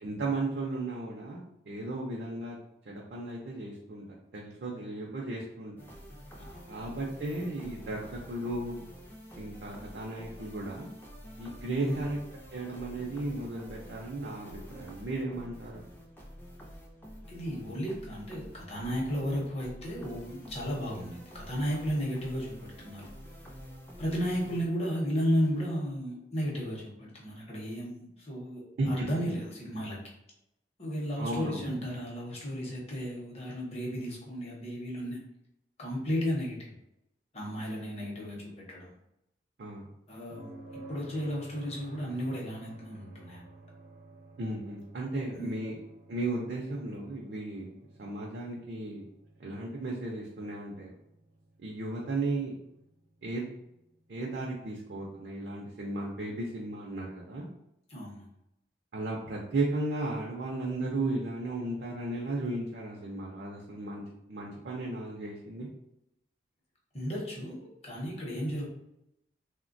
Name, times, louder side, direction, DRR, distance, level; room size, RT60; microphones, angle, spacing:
voice 1, 0.0-2.6 2.9-4.0 4.3-5.7 6.7-8.8 9.4-10.9 11.4-12.2 12.5-15.8 28.8-29.3 31.2-31.6 39.6-39.9 44.4-45.7 46.1-49.1 49.4-50.9 51.6-52.5 53.2-53.5 54.1-57.4 58.9-64.0 64.3-65.7, right 2 dB, 65° right, -2 dB, 0.4 m, -35 dB
sound 1, 5.8-24.7, equal, 10° left, 0.3 m, -48 dB
voice 2, 6.4-6.7 11.8-12.1 17.3-23.0 24.0-30.0 30.8-35.2 35.8-36.8 37.3-38.9 40.1-40.5 40.9-43.4 45.3-45.5 57.9-58.3 66.9-67.5 67.8-68.7, equal, 35° left, -3 dB, 0.7 m, -34 dB
sound 2, 40.3-54.2 56.4-56.5, right 2 dB, 85° right, 0.8 m, -53 dB
3.2 x 2.1 x 2.5 m, 0.84 s
head